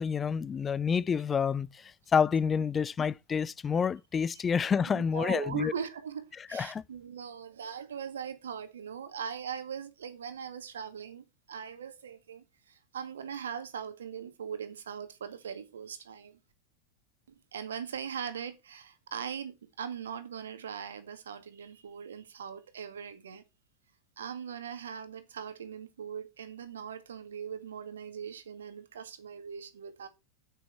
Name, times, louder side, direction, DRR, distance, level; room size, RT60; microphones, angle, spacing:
voice 1, 0.0-5.7 6.5-6.8, left 6 dB, 20° left, 0.5 m, -28 dB
voice 2, 4.9-16.4 17.5-23.4 24.2-30.1, right 7 dB, 65° right, 2.1 m, -40 dB
9.5 x 9.0 x 4.6 m
figure-of-eight pair, 90°, 0 cm